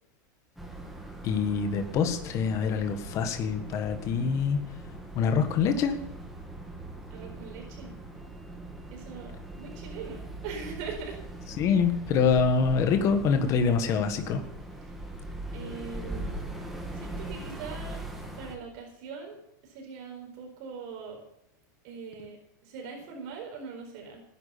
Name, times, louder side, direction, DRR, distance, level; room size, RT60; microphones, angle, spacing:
sound 1, 0.6-18.6, right 2 dB, ahead, 2.0 m, -41 dB
voice 1, 1.2-4.6 5.1-6.0 11.6-14.4, left 6 dB, 30° left, 7 dB, 1.6 m, -25 dB
voice 2, 7.1-7.9 8.9-11.2 14.8-14.9 15.5-16.5 16.9-18.0 18.3-19.4 19.6-21.2 21.8-24.2, right 5 dB, 50° right, 2 dB, 4.3 m, -41 dB
17.0 x 10.5 x 6.9 m, 0.81 s
supercardioid pair, 165°, 10 cm